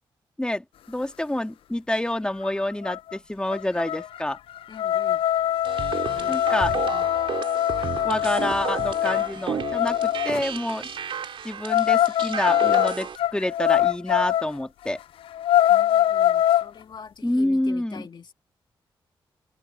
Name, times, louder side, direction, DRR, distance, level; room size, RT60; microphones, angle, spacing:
voice 1, 0.4-4.4 6.3-6.7 8.0-10.9 11.4-15.0 17.2-18.1, left 1 dB, 10° left, 2.5 m, -27 dB
sound 1, 2.5-2.6 2.8-3.1 3.5-10.4 11.7-14.5 14.9-15.0 15.3-16.7, left 12 dB, 80° left, 0.4 m, -23 dB
voice 2, 4.7-5.2 6.0-7.1 15.7-18.3, left 6 dB, 55° left, 2.1 m, -44 dB
sound 2, 5.6-13.2, right 7 dB, 70° right, 4.2 m, -33 dB
open air
cardioid pair, 65°, 9 cm